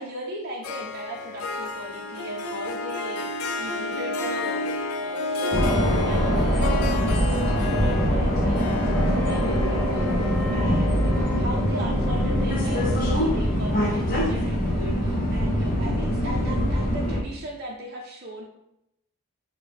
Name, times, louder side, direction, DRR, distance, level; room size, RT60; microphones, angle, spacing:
voice 1, 0.0-18.4, right 1 dB, 45° right, -3 dB, 0.5 m, -37 dB
Harp, 0.6-12.1, left 2 dB, 85° left, 0.4 m, -32 dB
sound 1, 5.5-17.2, equal, 40° left, 0.6 m, -23 dB
sound 2, 8.8-14.2, left 1 dB, 20° left, 1.3 m, -36 dB
6.3 x 2.2 x 3.4 m, 0.83 s
head